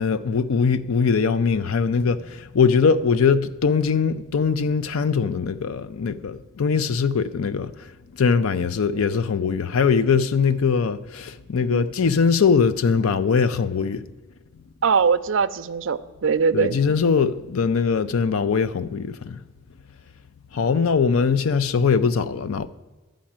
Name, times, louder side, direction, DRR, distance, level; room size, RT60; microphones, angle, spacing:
voice 1, 0.0-7.7 8.2-14.0 16.5-19.4 20.5-22.7, left 5 dB, 80° left, 0.5 m, -21 dB
voice 2, 14.8-16.8, right 5 dB, 60° right, 0.5 m, -21 dB
11.5 x 5.1 x 8.7 m
head